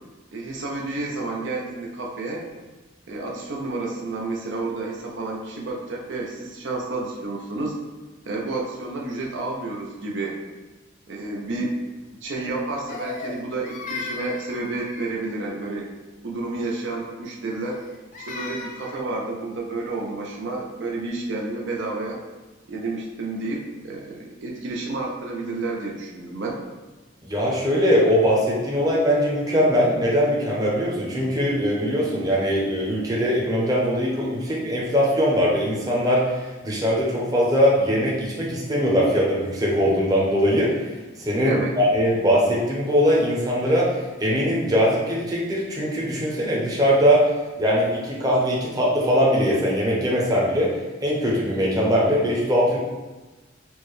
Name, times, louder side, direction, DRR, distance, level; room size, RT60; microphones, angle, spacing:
voice 1, 0.3-2.5 3.1-7.8 8.3-10.4 11.1-11.7 12.2-15.9 16.2-17.8 18.2-22.2 22.7-26.6 41.4-41.8, right 2 dB, 70° right, -2 dB, 0.5 m, -30 dB
Crying sobbing, 12.9-15.4 17.6-19.1, left 4 dB, 40° left, 0.4 m, -36 dB
voice 2, 27.2-40.7 41.2-47.2 47.6-50.7 51.0-52.8, equal, 20° right, -5 dB, 0.7 m, -21 dB
4.3 x 2.2 x 3.1 m, 1.2 s
head